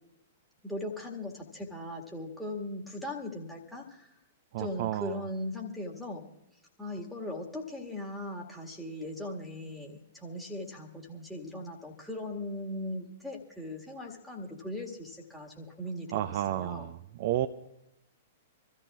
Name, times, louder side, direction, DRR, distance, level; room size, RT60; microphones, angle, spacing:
voice 1, 0.6-4.1 4.6-6.2 6.8-16.9, left 1 dB, ahead, -3 dB, 1.8 m, -39 dB
voice 2, 4.5-5.2 16.1-17.5, right 13 dB, 45° right, 9 dB, 0.4 m, -31 dB
26.5 x 14.0 x 2.4 m, 0.83 s
figure-of-eight pair, 105°, 0 cm